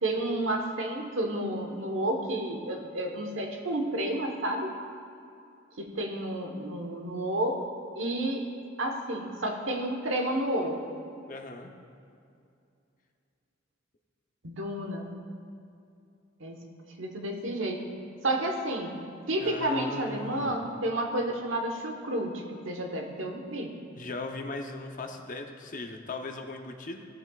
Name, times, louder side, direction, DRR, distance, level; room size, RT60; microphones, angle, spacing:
voice 1, 0.0-4.7 5.8-7.7 7.9-8.4 8.8-10.8 14.4-15.2 16.4-16.6 17.0-17.8 18.2-19.0 19.3-23.7, right 1 dB, 75° right, 3 dB, 1.2 m, -31 dB
voice 2, 11.3-11.7 19.4-20.6 23.9-27.1, left 2 dB, 40° left, 4 dB, 0.7 m, -38 dB
16.0 x 7.7 x 2.4 m, 2.5 s
head